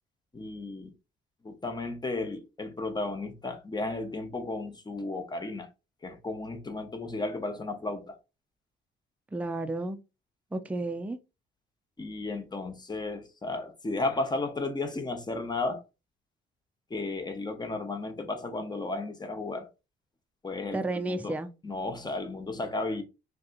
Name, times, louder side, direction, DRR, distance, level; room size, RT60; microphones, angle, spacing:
voice 1, 0.3-0.9 1.4-5.7 6.0-8.2 12.0-15.8 16.9-19.7 20.4-23.0, left 2 dB, 20° left, 0.8 m, -34 dB
voice 2, 9.3-10.0 10.5-11.2 20.7-21.5, right 2 dB, 5° right, 0.4 m, -32 dB
3.5 x 2.7 x 2.4 m
cardioid pair, 90°, 20 cm